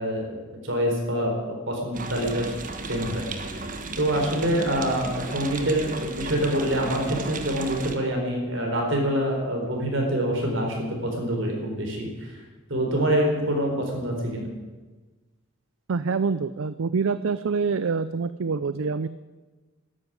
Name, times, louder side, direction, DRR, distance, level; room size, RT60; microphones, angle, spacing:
voice 1, 0.0-2.5 2.9-3.2 4.0-12.3 12.7-14.5, right 1 dB, 65° right, 1 dB, 4.3 m, -26 dB
sound 1, 1.9-8.0, right 3 dB, 40° right, 1.5 m, -35 dB
voice 2, 15.9-19.1, right 5 dB, 80° right, 14 dB, 0.5 m, -26 dB
13.5 x 11.0 x 9.4 m, 1.3 s
head